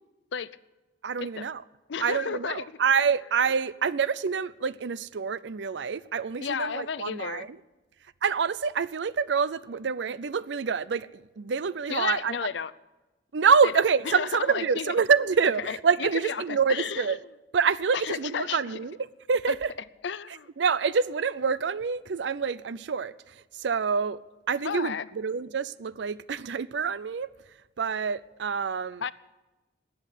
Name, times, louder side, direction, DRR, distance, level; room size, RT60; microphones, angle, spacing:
voice 1, 1.0-1.6 2.0-7.5 8.2-12.3 13.3-17.2 17.5-19.0 19.3-19.7 20.6-23.1 23.5-24.2 24.5-27.3 27.8-29.0, right 6 dB, 80° right, 0.5 m, -26 dB
voice 2, 1.9-2.6 6.4-7.5 11.9-12.7 13.6-13.7 14.1-14.9 15.6-17.2 17.9-18.6 19.5-19.6 20.0-20.5 24.6-25.1 29.0-29.1, left 6 dB, 80° left, 0.5 m, -32 dB
13.5 x 8.7 x 9.9 m
head